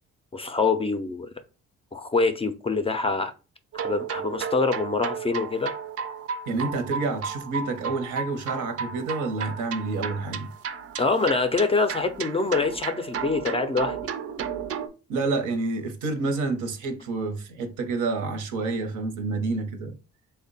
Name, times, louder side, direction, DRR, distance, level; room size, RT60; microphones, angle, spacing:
voice 1, 0.3-1.3 1.9-3.3 3.7-5.7 11.0-14.0, left 3 dB, 20° left, 0.3 m, -25 dB
sound 1, 3.7-14.9, right 7 dB, 50° right, 0.4 m, -34 dB
voice 2, 6.5-10.5 15.1-19.9, right 3 dB, 80° right, 0.8 m, -28 dB
3.3 x 2.1 x 3.9 m
cardioid pair, 90°, 30 cm